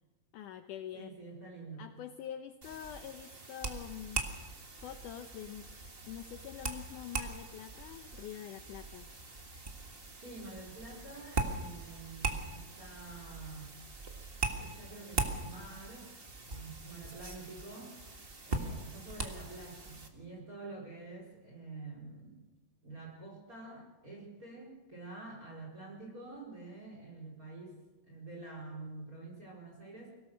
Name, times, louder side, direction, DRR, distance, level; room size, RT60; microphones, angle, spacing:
voice 1, 0.3-1.1 1.8-4.2 4.8-5.7 6.1-9.1 18.5-18.8, left 10 dB, 75° left, 8 dB, 2.1 m, -45 dB
voice 2, 0.9-1.9 10.2-13.8 14.5-16.1 16.4-18.2 18.4-22.5 22.8-30.1, right 3 dB, 25° right, -2 dB, 4.9 m, -48 dB
sound 1, 2.6-20.1, right 3 dB, 50° right, 0.6 m, -41 dB
24.5 x 17.5 x 6.4 m, 1.1 s
omnidirectional pair, 4.1 m